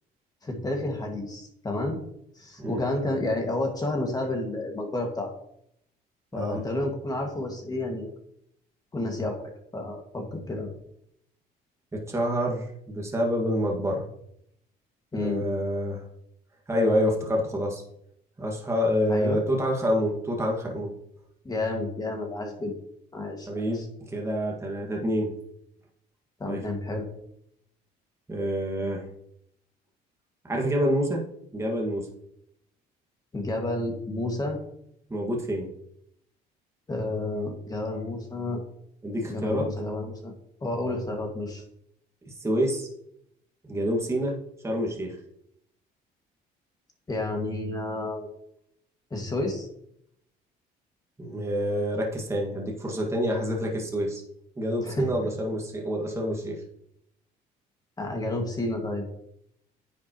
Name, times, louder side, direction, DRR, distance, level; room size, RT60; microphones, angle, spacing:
voice 1, 0.4-2.0 2.4-5.3 6.3-8.1 8.9-9.4 9.7-10.7 15.1-15.4 19.1-19.4 21.4-22.7 23.1-23.5 23.7-23.9 26.4-27.1 33.3-34.6 36.9-38.6 39.3-40.3 40.6-41.6 47.1-48.3 49.1-49.7 54.8-55.1 58.0-59.0, left 2 dB, 20° left, 2 dB, 2.0 m, -30 dB
voice 2, 11.9-14.0 15.1-16.0 16.7-17.8 18.4-20.9 23.5-23.8 24.1-25.3 26.4-26.6 28.3-29.1 30.4-31.2 31.5-32.1 35.1-35.7 39.0-39.7 42.4-42.9 43.7-44.4 44.6-45.2 51.2-54.2 54.6-56.6, equal, 15° right, -1 dB, 1.9 m, -27 dB
9.7 x 7.3 x 3.1 m, 0.73 s
cardioid pair, 110°, 17 cm